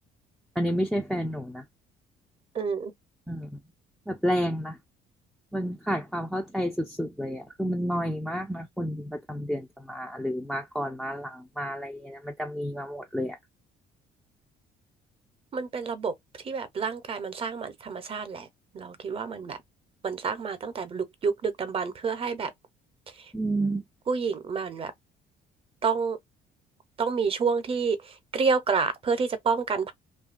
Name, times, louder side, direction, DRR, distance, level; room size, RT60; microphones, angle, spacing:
voice 1, 0.6-1.6 3.3-3.5 4.1-4.8 5.5-13.4 23.3-23.8, equal, ahead, 0.4 m, -30 dB
voice 2, 2.5-2.9 15.5-16.1 16.4-18.5 18.7-19.6 20.0-22.5 24.1-24.9 25.8-26.2 27.0-28.0 28.3-29.9, right 5 dB, 35° right, 0.7 m, -28 dB
2.7 x 2.3 x 2.4 m
cardioid pair, 110°, 17 cm